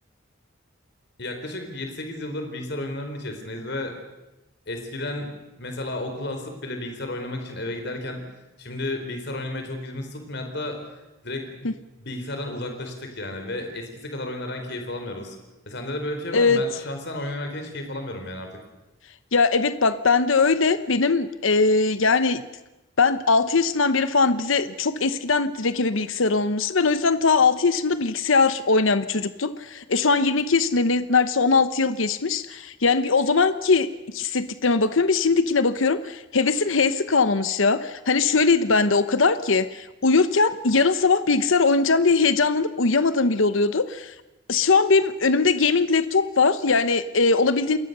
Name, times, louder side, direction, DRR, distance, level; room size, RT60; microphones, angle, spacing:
voice 1, 1.2-3.9 4.7-5.3 5.6-8.3 8.6-10.8 11.2-11.7 12.0-15.4 15.7-18.5, left 1 dB, 55° left, 5 dB, 4.4 m, -32 dB
voice 2, 19.3-22.4 23.0-33.9 34.1-44.1 44.5-47.8, left 4 dB, 75° left, 13 dB, 1.0 m, -21 dB
28.5 x 21.0 x 6.8 m, 0.99 s
head